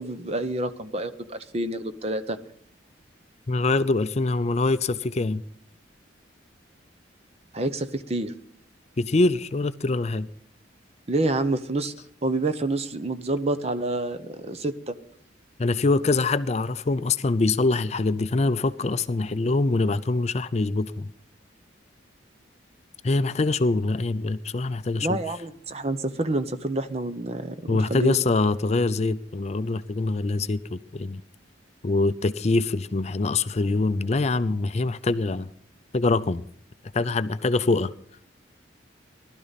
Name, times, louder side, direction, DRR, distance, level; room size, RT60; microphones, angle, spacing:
voice 1, 0.0-2.4 7.5-8.3 11.1-11.9 12.2-14.9 25.0-28.2, right 2 dB, 35° right, 11 dB, 0.8 m, -28 dB
voice 2, 3.5-5.4 9.0-10.3 15.6-21.1 23.0-25.2 27.7-31.2 31.8-35.5 35.9-36.4 36.9-37.9, left 3 dB, 35° left, 13 dB, 0.5 m, -24 dB
19.0 x 12.5 x 4.1 m, 0.63 s
head